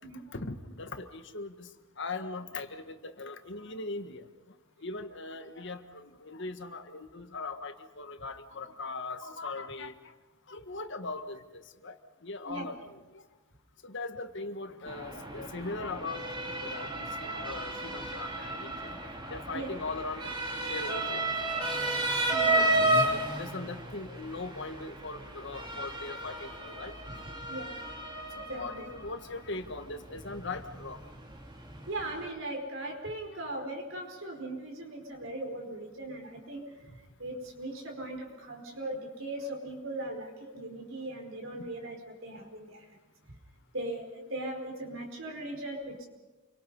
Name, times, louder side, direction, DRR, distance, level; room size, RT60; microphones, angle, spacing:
voice 1, 0.3-1.7 2.0-4.2 4.8-9.9 10.5-12.0 12.2-13.0 13.8-18.9 19.3-20.3 20.7-21.4 22.5-22.9 23.4-26.9 28.4-31.0 41.6-41.7, left 3 dB, 60° left, 8 dB, 1.6 m, -40 dB
Motor vehicle (road) / Siren, 14.9-32.2, right 2 dB, 25° right, 2.4 m, -33 dB
voice 2, 22.3-22.9 27.4-27.7 28.5-28.8 31.9-43.0 43.7-46.0, right 1 dB, 70° right, 2 dB, 4.6 m, -39 dB
29.0 x 24.0 x 5.5 m, 1.2 s
head